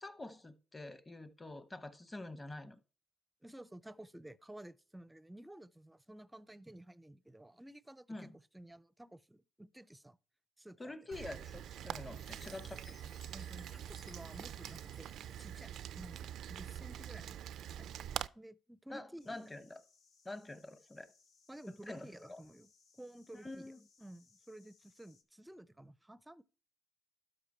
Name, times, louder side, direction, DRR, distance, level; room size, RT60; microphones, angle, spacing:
voice 1, 0.0-2.8 8.1-8.3 10.8-13.0 18.9-19.8 20.2-21.1 21.7-22.4 23.3-23.8, left 2 dB, 20° left, 0.9 m, -47 dB
voice 2, 3.4-10.2 10.6-10.9 13.3-15.1 15.4-17.5 17.8-18.0 18.3-19.3 21.5-23.7 24.0-26.4, right 1 dB, 10° right, 0.5 m, -53 dB
Rain, 11.1-18.3, right 10 dB, 75° right, 0.3 m, -45 dB
Chime, 12.1-16.1, left 4 dB, 45° left, 1.3 m, -63 dB
sound 1, 19.2-25.2, left 5 dB, 80° left, 1.4 m, -69 dB
12.5 x 5.1 x 4.3 m
cardioid pair, 90°, 0 cm